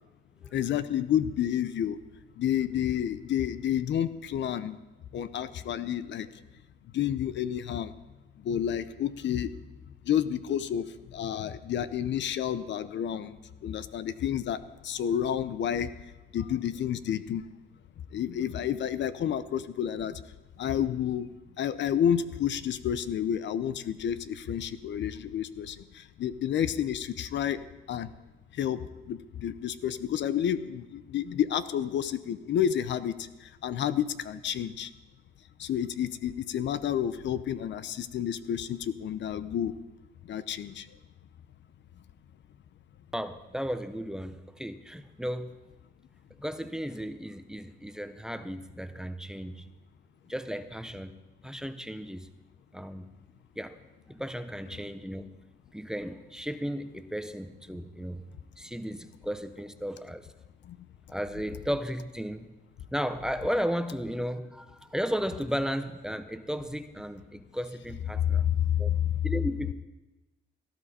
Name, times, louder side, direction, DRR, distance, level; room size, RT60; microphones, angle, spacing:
voice 1, 0.5-2.0 2.4-4.8 5.1-6.3 6.9-7.9 8.4-9.5 10.1-10.9 11.1-13.4 13.6-15.9 16.3-17.4 18.1-20.2 20.6-21.3 21.6-25.8 26.2-27.6 27.9-28.1 28.6-33.1 33.6-34.9 35.6-39.7 40.3-40.8 68.9-69.0, left 9 dB, 65° left, 14 dB, 0.7 m, -30 dB
voice 2, 43.1-45.6 46.4-49.7 50.3-51.1 51.4-52.3 52.7-53.0 53.6-53.8 54.1-55.3 55.7-58.3 58.6-60.3 61.1-62.5 62.9-68.5 68.8-68.9 69.2-69.7, equal, 5° right, 10 dB, 0.8 m, -34 dB
17.5 x 12.5 x 4.3 m, 1.1 s
cardioid pair, 90°, 20 cm